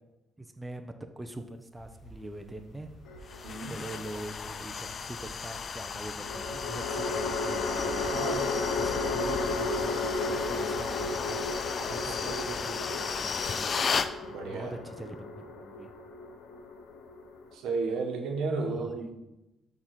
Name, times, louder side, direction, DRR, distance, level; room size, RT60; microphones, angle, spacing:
voice 1, 0.4-2.9 3.7-8.1 8.8-11.4 11.9-13.8 14.1-15.2 15.6-15.9 18.6-18.9, right 1 dB, 15° right, 6 dB, 0.6 m, -43 dB
sound 1, 1.7-12.6, equal, 70° left, 2.0 m, -52 dB
sound 2, 3.1-3.9 6.2-17.5, left 3 dB, 90° left, 0.8 m, -34 dB
sound 3, 3.3-14.1, left 5 dB, 45° left, 0.4 m, -35 dB
voice 2, 3.4-3.7 8.1-8.4 11.8-12.3 14.2-14.8 17.5-19.2, right 3 dB, 85° right, 3 dB, 1.1 m, -33 dB
6.3 x 3.8 x 6.2 m, 0.95 s
cardioid pair, 90°, 0 cm